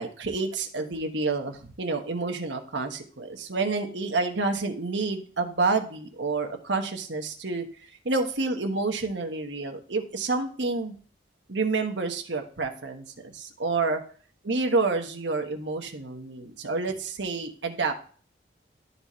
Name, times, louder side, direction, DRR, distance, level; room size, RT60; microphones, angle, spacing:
voice 1, 0.0-7.7 8.0-10.9 11.5-14.0 14.4-17.9, right 3 dB, 85° right, 4 dB, 1.3 m, -29 dB
12.0 x 4.2 x 3.1 m, 0.43 s
head